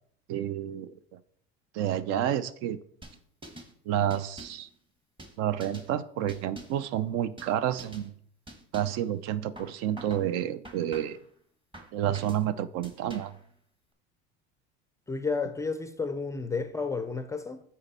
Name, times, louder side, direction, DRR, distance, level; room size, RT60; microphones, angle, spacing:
voice 1, 0.3-1.2 1.7-2.8 3.9-4.7 5.4-8.1 8.7-11.2 11.9-13.3, right 11 dB, 55° right, 0.5 m, -30 dB
sound 1, 3.0-3.7 4.1-4.7 5.2-5.9 6.3-6.9 7.4-7.5 7.8-8.1 8.5-9.0 9.6-10.3 10.6-11.3 11.7-12.4 12.8-13.4, right 1 dB, 15° right, 1.2 m, -47 dB
voice 2, 15.1-17.6, left 4 dB, 10° left, 0.4 m, -31 dB
8.6 x 4.2 x 4.1 m
supercardioid pair, 115°, 31 cm